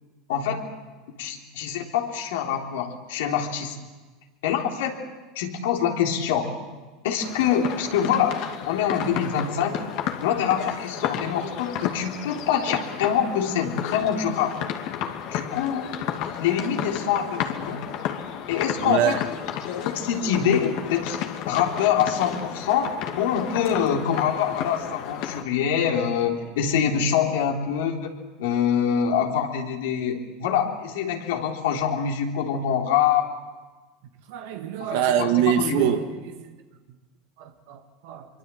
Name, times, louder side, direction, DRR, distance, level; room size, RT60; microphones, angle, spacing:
voice 1, 0.3-0.7 1.2-3.8 4.4-5.0 5.4-6.5 7.0-8.4 8.7-9.8 10.2-14.6 15.3-15.9 16.4-17.9 18.5-19.2 19.6-21.2 21.5-22.9 23.2-28.1 28.4-33.3 34.8-35.9, left 8 dB, 75° left, 3.5 m, -25 dB
sound 1, 7.2-25.4, left 10 dB, 60° left, 2.5 m, -32 dB
voice 2, 18.8-19.2 34.3-36.4 37.4-38.3, right 10 dB, 70° right, 1.9 m, -24 dB
24.5 x 24.0 x 7.8 m
hypercardioid pair, 90°, 0 cm